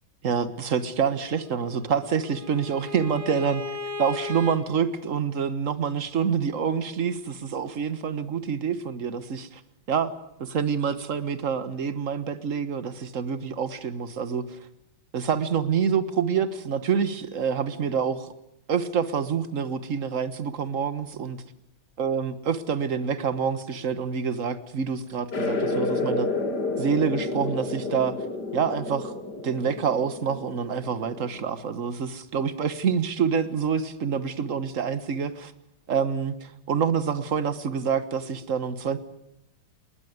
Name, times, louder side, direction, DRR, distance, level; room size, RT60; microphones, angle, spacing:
voice 1, 0.2-3.6 4.0-9.6 9.9-10.1 10.4-14.6 15.1-18.3 18.7-21.4 22.0-26.3 26.8-28.1 28.5-29.1 29.4-35.5 35.9-39.0, right 6 dB, 45° right, 14 dB, 1.4 m, -27 dB
Bowed string instrument, 1.5-4.6, left 3 dB, 85° right, 3.2 m, -36 dB
sound 1, 25.3-31.5, left 3 dB, 50° left, 3.1 m, -30 dB
20.5 x 20.0 x 9.5 m, 0.81 s
omnidirectional pair, 2.2 m